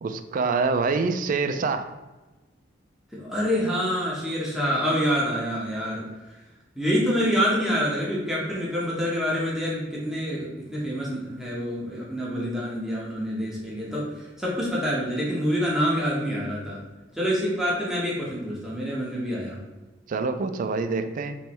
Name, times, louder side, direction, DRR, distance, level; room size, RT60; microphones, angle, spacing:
voice 1, 0.0-1.9 20.1-21.3, right 4 dB, 45° right, 8 dB, 0.3 m, -26 dB
voice 2, 3.1-6.0 6.8-16.8 17.2-19.6, equal, ahead, -6 dB, 0.9 m, -26 dB
3.3 x 3.1 x 4.4 m, 1.1 s
head